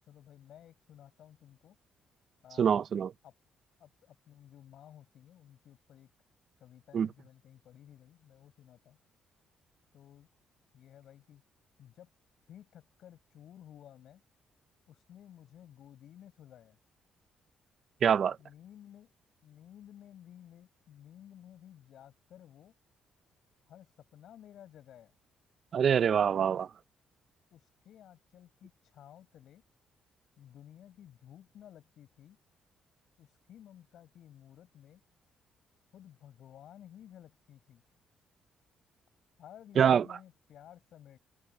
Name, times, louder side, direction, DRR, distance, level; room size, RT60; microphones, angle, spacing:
voice 1, 0.0-1.8 2.4-2.8 3.2-3.3 3.8-6.1 6.6-9.0 9.9-10.3 10.7-11.4 11.8-12.1 12.5-14.2 14.9-16.8 18.4-19.1 19.4-22.8 23.7-25.1 26.5-26.7 27.5-29.6 30.4-32.4 33.2-35.0 35.9-37.8 39.4-41.2, left 10 dB, 70° left, 7.7 m, -55 dB
voice 2, 2.6-3.1 6.9-7.1 18.0-18.4 25.7-26.7 39.8-40.0, right 8 dB, 55° right, 0.7 m, -25 dB
cardioid pair, 90°, 0 cm